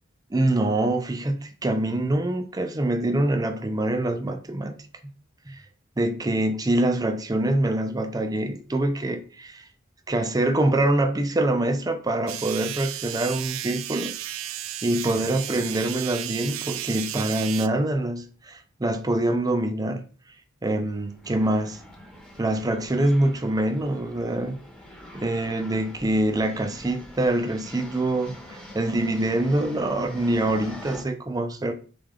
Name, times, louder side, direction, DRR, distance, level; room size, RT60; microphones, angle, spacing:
voice 1, 0.3-1.4 1.6-4.8 5.5-5.6 6.0-9.7 10.1-14.1 14.8-20.0 20.6-21.8 22.4-24.6 25.1-31.7, right 1 dB, 20° right, 0.5 m, -25 dB
sound 1, 12.3-17.7, right 13 dB, 85° right, 0.4 m, -34 dB
sound 2, 20.9-31.0, left 1 dB, 5° left, 0.9 m, -44 dB
3.9 x 3.4 x 3.7 m
head